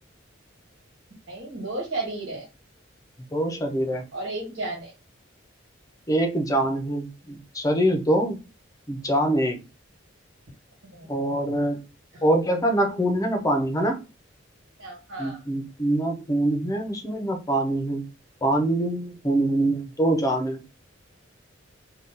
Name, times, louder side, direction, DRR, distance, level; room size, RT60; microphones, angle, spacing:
voice 1, 1.3-2.5 4.1-4.9 10.9-11.1 12.1-12.2 14.8-15.4, right 2 dB, 70° right, 1.6 m, -33 dB
voice 2, 3.3-4.0 6.1-8.4 8.9-9.6 11.1-11.8 12.2-14.0 15.2-18.0 18.4-20.6, right 1 dB, 20° left, 0.6 m, -24 dB
2.7 x 2.3 x 3.6 m
head